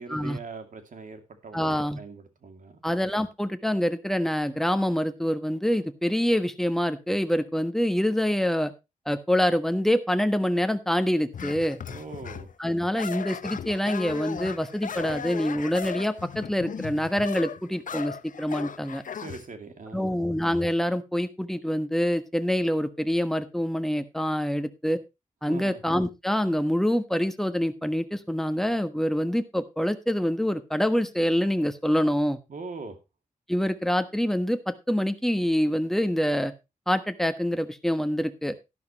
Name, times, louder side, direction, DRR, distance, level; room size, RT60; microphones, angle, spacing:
voice 1, 0.0-2.8 11.9-12.5 19.1-20.2 25.5-25.8 32.5-33.0, right 4 dB, 70° right, 7 dB, 2.5 m, -41 dB
voice 2, 1.5-2.0 2.8-8.7 9.1-11.8 12.6-19.0 19.9-25.0 25.4-32.4 33.5-36.5 36.9-38.5, equal, 5° left, 9 dB, 1.2 m, -26 dB
sound 1, 11.3-12.5 13.0-19.4, left 7 dB, 70° left, 0.7 m, -37 dB
12.0 x 12.0 x 3.0 m, 0.25 s
wide cardioid pair, 100°, 14 cm